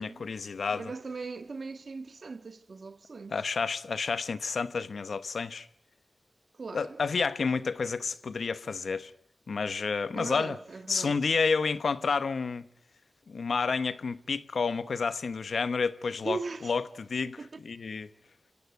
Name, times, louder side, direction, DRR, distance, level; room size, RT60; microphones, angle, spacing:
voice 1, 0.0-0.8 3.3-5.7 6.7-9.1 9.5-10.6 10.9-12.7 13.3-18.1, left 5 dB, 85° left, 1.0 m, -30 dB
voice 2, 0.7-3.4 6.5-7.0 10.1-11.2 16.2-16.7 17.4-17.5, right 4 dB, 65° right, 1.7 m, -39 dB
27.5 x 16.5 x 9.3 m
wide cardioid pair, 70°, 0 cm